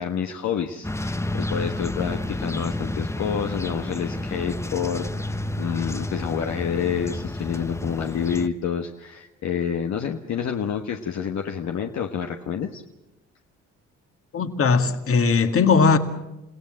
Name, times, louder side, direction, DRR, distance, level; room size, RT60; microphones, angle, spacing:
voice 1, 0.0-12.8, left 7 dB, 65° left, 1.4 m, -28 dB
sound 1, 0.8-8.5, left 1 dB, 10° left, 0.8 m, -30 dB
voice 2, 14.3-16.0, left 5 dB, 45° left, 2.0 m, -19 dB
30.0 x 16.5 x 7.7 m
cardioid pair, 90°, 30 cm